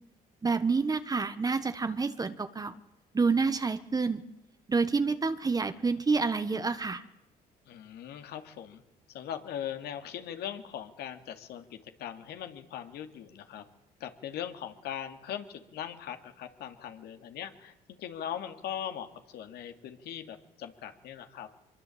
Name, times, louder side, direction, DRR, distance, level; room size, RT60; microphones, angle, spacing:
voice 1, 0.4-2.7 3.1-4.2 4.7-7.0, right 4 dB, 20° right, 10 dB, 1.3 m, -28 dB
voice 2, 7.7-8.8 9.1-13.6 14.0-21.5, left 9 dB, 75° left, 7 dB, 2.7 m, -40 dB
24.0 x 23.0 x 8.8 m, 0.86 s
cardioid pair, 110°, 17 cm